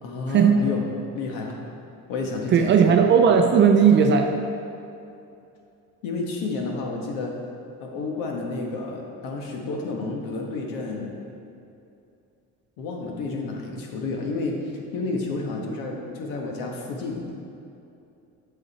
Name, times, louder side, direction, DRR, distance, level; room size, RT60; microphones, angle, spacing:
voice 1, 0.0-0.9 1.1-1.6 2.1-2.7 6.0-7.3 7.8-11.1 12.8-14.6 14.9-17.3, left 3 dB, 80° left, 0 dB, 1.4 m, -30 dB
voice 2, 2.5-4.3, right 6 dB, 35° right, 4 dB, 0.5 m, -16 dB
8.5 x 6.8 x 4.1 m, 2.7 s
cardioid pair, 160°, 33 cm